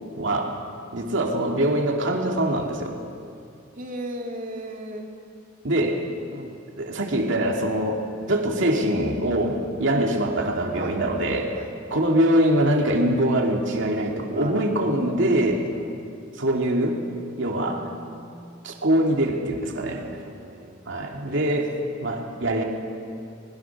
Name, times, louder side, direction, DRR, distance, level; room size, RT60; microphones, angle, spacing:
voice 1, 0.2-0.6 0.9-2.9 5.6-6.0 6.8-8.0 8.3-11.5 11.9-15.7 16.4-16.9 17.4-17.8 18.6-20.0 20.9-21.7 22.0-22.6, right 1 dB, 65° right, 1 dB, 2.6 m, -23 dB
voice 2, 3.8-5.1 6.3-6.6 10.7-11.8 14.3-14.9 15.7-15.9 17.5-18.8 19.9-20.8 21.3-21.4, right 1 dB, 40° right, 1 dB, 2.3 m, -38 dB
21.5 x 20.5 x 6.0 m, 2.4 s
head